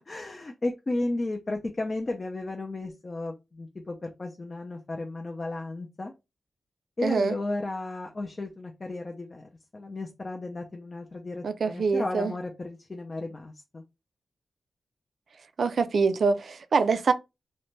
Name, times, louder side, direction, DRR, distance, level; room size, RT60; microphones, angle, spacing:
voice 1, 0.1-6.1 7.0-13.8, left 2 dB, 35° left, 0.4 m, -34 dB
voice 2, 7.0-7.4 11.4-12.3 15.6-17.1, right 4 dB, 65° right, 0.3 m, -24 dB
2.5 x 2.1 x 3.0 m
wide cardioid pair, 120°, 0 cm